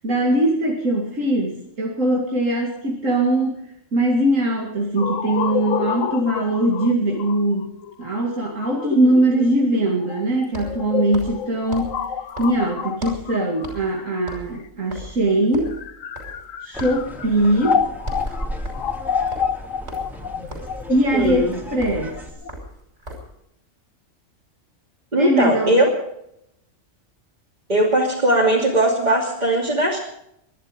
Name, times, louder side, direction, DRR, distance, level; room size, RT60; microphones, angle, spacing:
voice 1, 0.0-3.6 3.9-12.0 12.4-15.7 16.6-17.8 20.9-22.2 25.2-25.8, right 1 dB, 85° right, -1 dB, 2.7 m, -21 dB
sound 1, 5.0-14.8 15.6-22.5, left 7 dB, 80° left, 1.3 m, -29 dB
sound 2, 10.4-13.3 13.6-14.0 14.2-16.5 16.8-17.1 17.4-17.7 18.0-23.4, equal, 60° right, 5.7 m, -38 dB
sound 3, 16.7-22.3, equal, ahead, 2.9 m, -35 dB
voice 2, 21.1-21.5 25.1-25.9 27.7-30.0, right 1 dB, 35° right, -3 dB, 3.0 m, -19 dB
22.0 x 12.0 x 5.2 m, 0.77 s
omnidirectional pair, 1.3 m